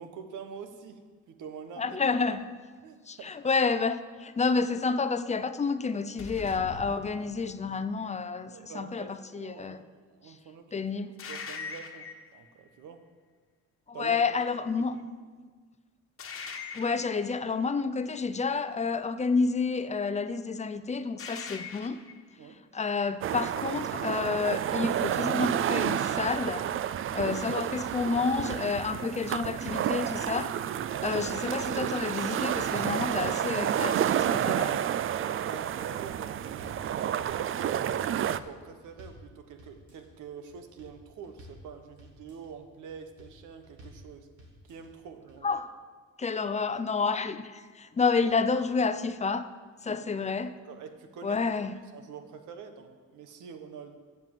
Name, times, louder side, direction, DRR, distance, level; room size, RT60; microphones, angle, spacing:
voice 1, 0.0-2.0 2.8-3.3 8.5-9.8 10.1-10.9 11.3-13.1 13.9-14.2 14.8-15.0 22.4-22.6 30.9-31.2 35.2-44.3 44.6-45.6 49.8-50.2 50.6-51.4 51.9-53.9, right 6 dB, 85° right, 7 dB, 1.0 m, -46 dB
voice 2, 1.8-2.5 3.1-9.8 10.7-11.2 13.9-15.0 16.7-22.0 22.7-26.7 27.1-30.5 31.0-34.8 45.4-45.7 46.2-49.5 49.8-50.5 51.2-51.7, left 4 dB, 25° left, 12 dB, 0.5 m, -29 dB
sound 1, 6.2-7.8 11.2-12.4 16.2-17.3 21.2-22.1, left 5 dB, 45° left, 1.3 m, -41 dB
sound 2, 23.2-38.4, right 10 dB, 45° right, 0.4 m, -30 dB
sound 3, 35.7-36.1 36.4-36.8 37.2-37.7 38.1-38.5 38.8-39.2 39.6-40.1 40.5-40.9 41.2-41.6 42.0-42.5 42.9-43.3 43.6-44.0 44.4-44.9 45.3-45.4, equal, 65° right, 3.4 m, -52 dB
7.7 x 7.3 x 7.6 m, 1.5 s
cardioid pair, 90°, 30 cm